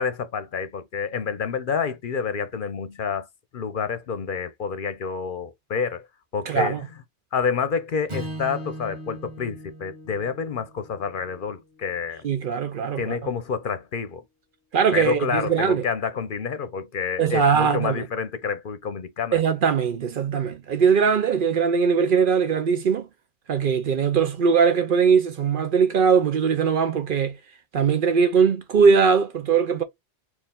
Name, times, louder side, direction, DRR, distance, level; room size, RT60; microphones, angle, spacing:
voice 1, 0.0-3.3 3.5-6.0 6.3-6.7 7.3-12.2 13.0-14.2 14.9-19.4, left 6 dB, 55° left, 0.8 m, -28 dB
voice 2, 6.5-6.8 12.2-13.2 14.7-15.9 17.2-18.0 19.3-23.1 23.5-27.4 27.7-29.8, right 6 dB, 60° right, 0.7 m, -20 dB
Strum, 8.1-12.4, right 1 dB, 25° right, 1.4 m, -39 dB
4.5 x 2.4 x 3.5 m
omnidirectional pair, 1.1 m